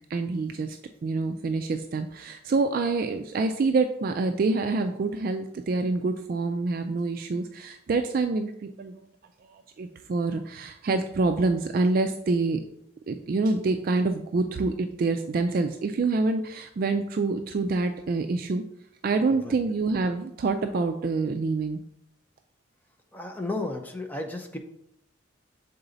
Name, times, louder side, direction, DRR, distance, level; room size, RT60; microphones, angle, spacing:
voice 1, 0.1-9.0 9.5-12.6 13.1-18.6 19.0-21.8, right 3 dB, 45° right, 6 dB, 0.3 m, -26 dB
voice 2, 23.1-24.6, left 2 dB, 10° left, 4 dB, 0.6 m, -33 dB
6.8 x 3.9 x 3.9 m, 0.79 s
head